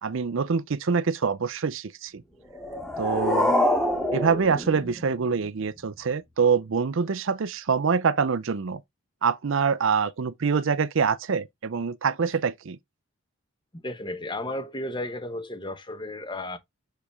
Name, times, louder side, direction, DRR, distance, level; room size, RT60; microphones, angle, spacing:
voice 1, 0.0-2.2 3.0-3.6 4.1-8.8 9.2-12.8, right 5 dB, 60° right, 0.5 m, -25 dB
sound 1, 2.5-5.5, left 1 dB, ahead, 2.3 m, -26 dB
voice 2, 13.7-16.6, left 1 dB, 20° left, 1.0 m, -33 dB
6.7 x 4.9 x 3.5 m
head